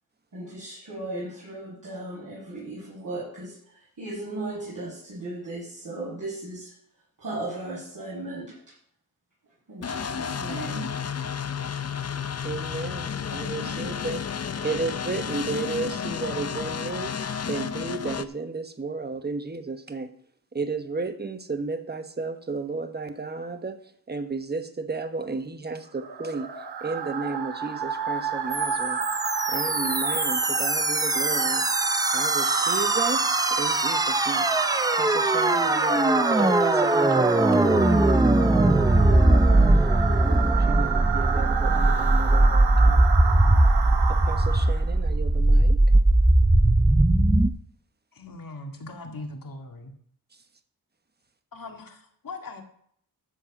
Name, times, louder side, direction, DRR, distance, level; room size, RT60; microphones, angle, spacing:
voice 1, 0.3-3.6 4.0-6.7 7.2-8.6 9.7-10.9 13.5-13.9, right 2 dB, 50° right, -8 dB, 5.5 m, -36 dB
sound 1, 9.8-18.2, left 7 dB, 40° left, 0.6 m, -32 dB
voice 2, 12.4-14.2 14.6-17.1 17.5-20.1 20.5-23.8 24.1-26.5 26.8-29.0 29.5-31.6 32.1-34.5 34.9-37.4 40.2-43.0 44.1-45.8, right 3 dB, 25° right, 8 dB, 1.2 m, -33 dB
sound 2, 26.0-44.9, right 6 dB, 85° right, 1.1 m, -29 dB
sound 3, 28.5-47.5, right 2 dB, 10° right, 0.6 m, -21 dB
voice 3, 48.1-49.9 51.5-52.6, left 2 dB, 60° left, 3 dB, 2.2 m, -40 dB
13.0 x 4.6 x 7.3 m, 0.65 s
wide cardioid pair, 75°, 38 cm